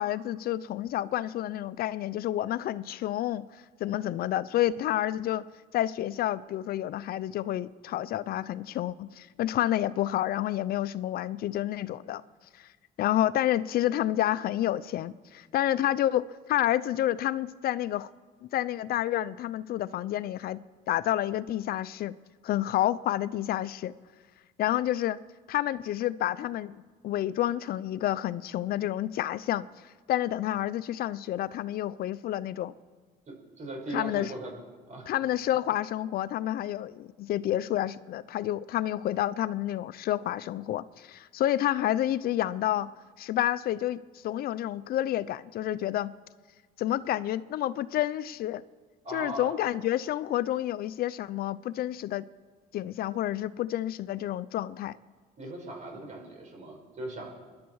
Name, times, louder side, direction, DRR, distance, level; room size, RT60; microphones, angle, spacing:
voice 1, 0.0-5.4 5.7-12.2 12.5-12.7 13.0-18.1 18.5-22.1 22.4-23.9 24.6-25.2 25.5-26.8 27.0-29.7 30.1-32.7 33.9-34.3 35.1-44.0 44.2-46.1 46.8-48.6 49.1-52.3 52.7-55.0, left 13 dB, 65° left, 16 dB, 0.5 m, -29 dB
voice 2, 33.3-34.6 34.9-35.1 49.0-49.6 55.4-57.3, right 2 dB, 45° right, 1 dB, 5.6 m, -39 dB
24.5 x 11.5 x 4.8 m, 1.4 s
cardioid pair, 110°, 17 cm